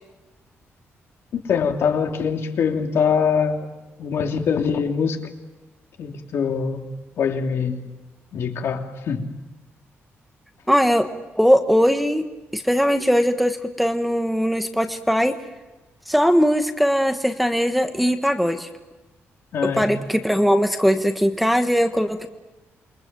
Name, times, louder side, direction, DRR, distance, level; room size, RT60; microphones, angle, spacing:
voice 1, 1.5-3.7 4.0-5.2 6.0-6.9 7.2-7.9 8.3-9.3 19.5-19.9, left 6 dB, 65° left, 3 dB, 3.1 m, -23 dB
voice 2, 10.7-11.1 11.4-12.2 12.5-15.3 16.1-18.7 19.6-22.3, equal, ahead, 5 dB, 1.3 m, -20 dB
28.5 x 23.5 x 7.6 m, 1.1 s
wide cardioid pair, 165°, 5 cm